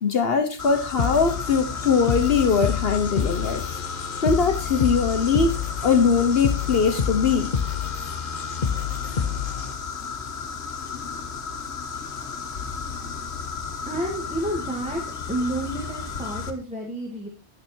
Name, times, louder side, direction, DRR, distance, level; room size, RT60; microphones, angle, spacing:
voice 1, 0.0-3.6 4.2-5.5 5.8-7.5, left 5 dB, 65° left, 1.2 m, -21 dB
sound 1, 0.6-16.5, left 5 dB, 80° left, 1.5 m, -34 dB
sound 2, 1.0-10.0, left 7 dB, 45° left, 1.0 m, -28 dB
voice 2, 13.9-15.0 15.3-17.3, right 1 dB, 5° right, 2.2 m, -30 dB
12.0 x 7.5 x 4.4 m
omnidirectional pair, 1.1 m